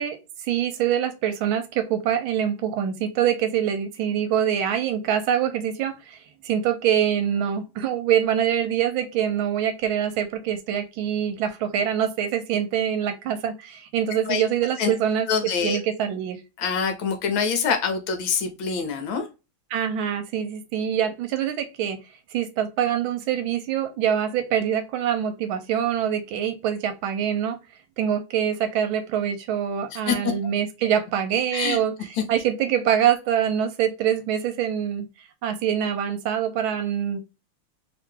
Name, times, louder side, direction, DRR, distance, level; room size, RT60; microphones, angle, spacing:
voice 1, 0.0-16.4 19.7-22.0 22.3-27.6 28.0-31.9 32.3-37.2, right 9 dB, 75° right, 8 dB, 1.3 m, -25 dB
voice 2, 15.3-15.8 16.6-19.3 29.9-30.3 31.5-31.8, left 6 dB, 70° left, 6 dB, 1.4 m, -25 dB
3.3 x 2.9 x 3.6 m, 0.27 s
omnidirectional pair, 2.4 m